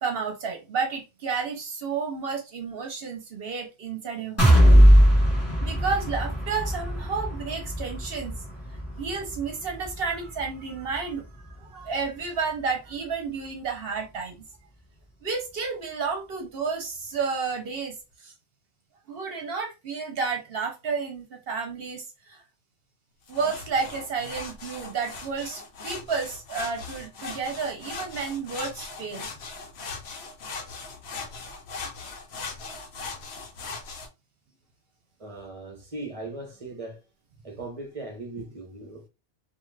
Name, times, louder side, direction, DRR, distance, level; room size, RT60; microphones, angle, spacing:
voice 1, 0.0-4.9 5.6-8.3 9.0-14.4 15.2-18.0 18.2-18.3 19.1-22.4 23.3-29.3, right 5 dB, 60° right, 0.9 m, -31 dB
sound 1, 4.4-12.2 12.6-12.7 13.1-13.2, equal, 15° left, 1.1 m, -21 dB
sound 2, 23.3-34.1, left 4 dB, 70° left, 0.9 m, -39 dB
voice 2, 35.2-37.0 37.4-39.0, right 2 dB, 35° right, 0.8 m, -38 dB
2.5 x 2.4 x 3.1 m
omnidirectional pair, 1.1 m